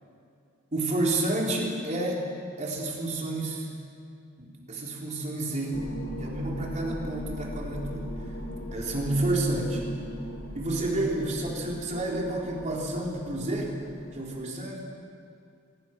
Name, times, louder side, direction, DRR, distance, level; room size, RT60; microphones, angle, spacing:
voice 1, 0.7-2.2 2.6-3.7 4.4-5.8 6.2-8.2 8.7-9.8 10.5-13.8 14.1-14.8, right 2 dB, 35° right, -2 dB, 3.9 m, -30 dB
sound 1, 5.7-14.2, equal, 80° left, 2.4 m, -39 dB
24.5 x 21.5 x 6.1 m, 2.4 s
head